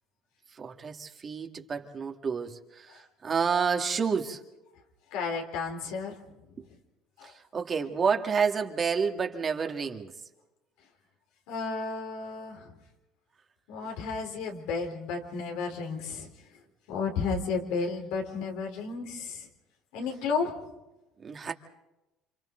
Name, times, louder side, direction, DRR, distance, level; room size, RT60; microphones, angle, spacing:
voice 1, 0.5-4.4 6.6-6.7 7.2-10.1 21.2-21.5, right 6 dB, 35° right, 2.2 m, -29 dB
voice 2, 5.1-6.1 11.5-12.6 13.7-16.3 16.9-19.4 19.9-20.5, left 4 dB, 80° left, 4.0 m, -32 dB
29.0 x 26.5 x 4.0 m
supercardioid pair, 85°, 0 cm